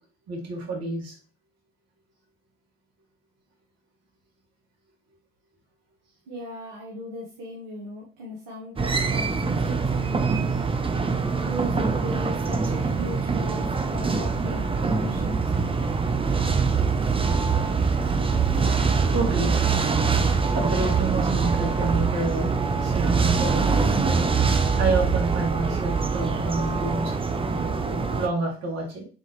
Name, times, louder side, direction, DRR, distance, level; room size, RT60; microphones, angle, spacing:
voice 1, 0.3-1.1 19.1-19.6 20.5-22.5 22.8-23.9 24.8-27.2 28.2-29.0, right 2 dB, 55° right, 0 dB, 2.1 m, -28 dB
voice 2, 6.3-10.6 11.1-15.5, left 1 dB, 75° right, -4 dB, 1.3 m, -38 dB
sound 1, 8.8-28.3, right 5 dB, 20° right, 0.6 m, -24 dB
4.1 x 3.9 x 3.1 m, 0.37 s
hypercardioid pair, 60°, 30 cm